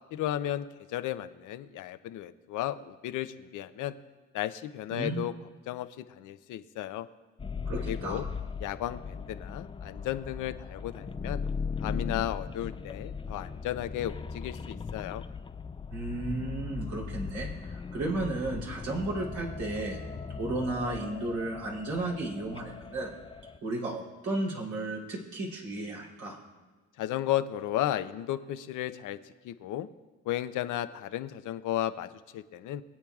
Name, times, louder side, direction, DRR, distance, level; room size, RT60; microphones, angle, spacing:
voice 1, 0.1-3.9 4.3-5.3 5.7-7.1 7.8-8.3 8.6-11.4 11.8-15.2 27.0-29.2 29.4-29.9 30.3-32.8, left 12 dB, 85° left, 11 dB, 0.7 m, -34 dB
voice 2, 4.9-5.3 7.6-8.2 15.9-20.0 20.4-23.1 23.6-26.4, right 2 dB, 75° right, -3 dB, 3.3 m, -34 dB
sound 1, 7.4-23.6, left 5 dB, 15° left, 0.3 m, -38 dB
23.0 x 8.5 x 2.4 m, 1.3 s
cardioid pair, 90°, 30 cm